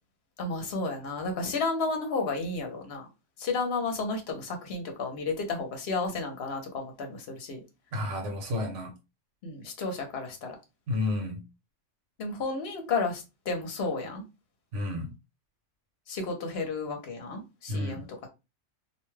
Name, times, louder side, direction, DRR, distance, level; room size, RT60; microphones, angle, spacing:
voice 1, 0.4-3.1 3.4-7.6 9.4-10.6 12.2-14.2 16.1-18.3, left 3 dB, 60° left, 1.0 m, -32 dB
voice 2, 7.9-8.9 10.9-11.4 14.7-15.1 17.7-18.0, left 2 dB, 80° right, 1.3 m, -31 dB
2.7 x 2.2 x 3.1 m
omnidirectional pair, 1.2 m